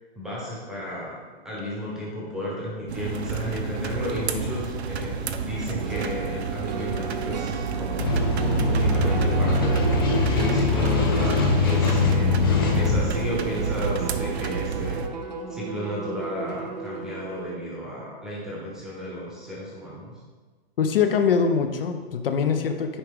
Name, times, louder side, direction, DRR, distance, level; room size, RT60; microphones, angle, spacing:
voice 1, 0.2-1.2 1.4-8.1 8.7-9.9 10.3-15.0 15.5-20.2, equal, ahead, -6 dB, 0.9 m, -33 dB
sound 1, 1.6-1.7 5.0-5.1 5.7-17.6, right 3 dB, 40° right, 0.7 m, -35 dB
sound 2, 2.9-15.1, right 6 dB, 80° right, 0.8 m, -30 dB
sound 3, 8.0-13.0, left 3 dB, 20° left, 0.5 m, -22 dB
voice 2, 20.8-23.0, left 6 dB, 60° left, 7 dB, 0.7 m, -23 dB
9.9 x 4.8 x 3.6 m, 1.4 s
hypercardioid pair, 175°, 32 cm